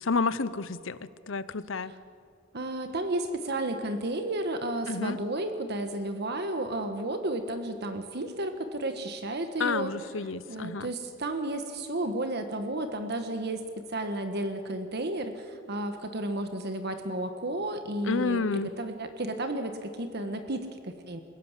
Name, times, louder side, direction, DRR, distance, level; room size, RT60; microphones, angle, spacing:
voice 1, 0.0-1.9 4.9-5.2 9.6-10.9 18.0-18.7, left 4 dB, 75° left, 15 dB, 0.9 m, -30 dB
voice 2, 2.5-9.9 10.5-21.2, right 1 dB, 55° right, 7 dB, 1.5 m, -32 dB
29.0 x 17.0 x 7.5 m, 2.3 s
head